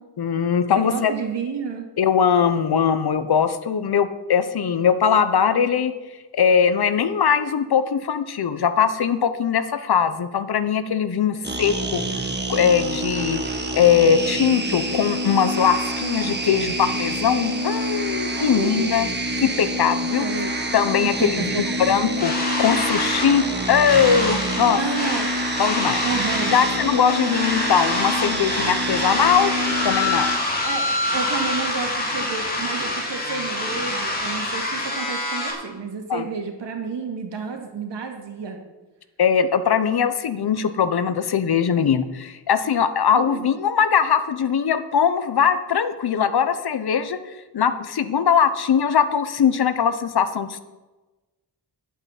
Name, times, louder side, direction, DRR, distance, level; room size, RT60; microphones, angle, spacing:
voice 1, 0.2-1.1 2.0-5.9 6.3-12.0 12.5-19.1 19.4-20.3 20.7-22.3 22.6-24.8 25.6-26.0 26.5-30.3 36.1-36.3 39.2-47.2 47.5-50.6, left 7 dB, 65° left, 12 dB, 1.0 m, -21 dB
voice 2, 0.7-1.9 18.4-18.9 20.2-20.6 21.0-21.8 24.7-25.5 26.0-26.6 30.6-38.6 43.1-43.5, right 5 dB, 80° right, 3 dB, 2.3 m, -30 dB
sound 1, 11.4-30.4, right 1 dB, 25° right, 1.5 m, -27 dB
sound 2, 22.2-35.5, left 2 dB, 20° left, 3.0 m, -26 dB
11.0 x 8.8 x 7.2 m, 1.1 s
wide cardioid pair, 150°, 42 cm